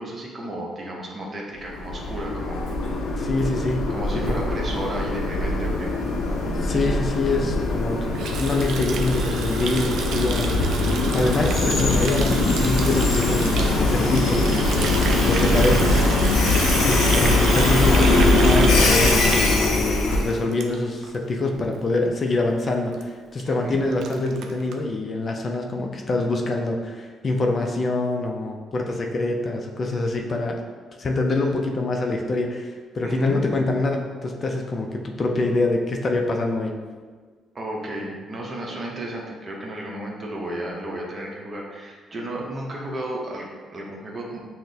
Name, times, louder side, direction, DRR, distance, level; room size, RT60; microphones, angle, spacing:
voice 1, 0.0-2.7 3.9-5.9 15.3-15.7 23.4-23.8 33.0-33.4 37.5-44.4, right 1 dB, 40° right, -1 dB, 0.8 m, -33 dB
Train, 1.6-20.4, left 2 dB, 90° left, 0.5 m, -21 dB
voice 2, 3.2-3.9 4.3-4.4 6.6-10.5 10.9-14.8 15.2-16.4 16.8-30.6 31.0-36.7, left 2 dB, 40° left, 2 dB, 0.4 m, -25 dB
Water tap faucet, 8.1-21.2 21.4-21.7 22.0-22.3 22.6-22.7 22.9-23.0 23.4-23.5 23.7-24.8, right 5 dB, 75° right, 0.3 m, -31 dB
5.8 x 2.1 x 2.7 m, 1.5 s
cardioid pair, 95°, 0 cm